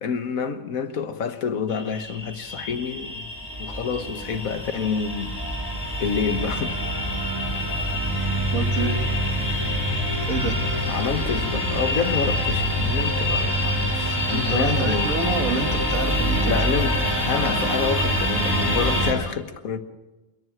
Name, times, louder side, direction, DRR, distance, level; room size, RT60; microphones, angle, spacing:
voice 1, 0.0-3.3 3.6-5.4 6.0-6.8 10.9-15.3 16.4-19.8, left 6 dB, 90° left, 1.7 m, -28 dB
sound 1, 1.7-19.1, equal, 15° left, 4.5 m, -25 dB
voice 2, 8.5-9.0 10.3-10.6 14.3-16.6, right 3 dB, 75° right, 2.1 m, -28 dB
28.0 x 11.0 x 8.7 m
omnidirectional pair, 1.4 m